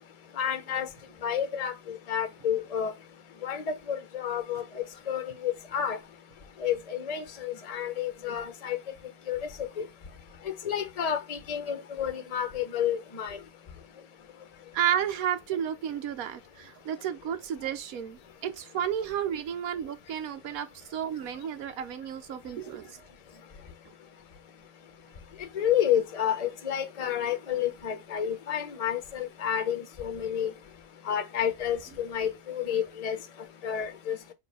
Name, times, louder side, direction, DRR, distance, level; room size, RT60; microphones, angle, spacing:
voice 1, 0.4-0.9 1.2-2.9 3.4-6.0 6.6-8.8 9.3-9.4 10.5-13.4 25.6-30.5 31.1-33.2 33.6-34.2, left 9 dB, 35° left, 0.7 m, -30 dB
voice 2, 14.7-23.0, right 9 dB, 90° right, 1.2 m, -32 dB
7.1 x 2.8 x 5.3 m
omnidirectional pair, 1.5 m